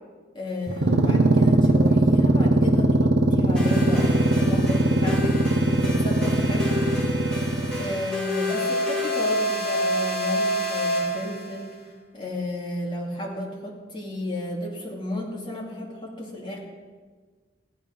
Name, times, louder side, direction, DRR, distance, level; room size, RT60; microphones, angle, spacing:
voice 1, 0.3-5.3 5.8-6.7 7.8-11.7 12.1-16.6, left 1 dB, 25° left, -3 dB, 2.8 m, -33 dB
sound 1, 0.7-8.0, right 2 dB, 70° right, 1.0 m, -20 dB
sound 2, 3.6-11.6, equal, 5° left, 3.3 m, -28 dB
15.5 x 11.0 x 5.3 m, 1.4 s
head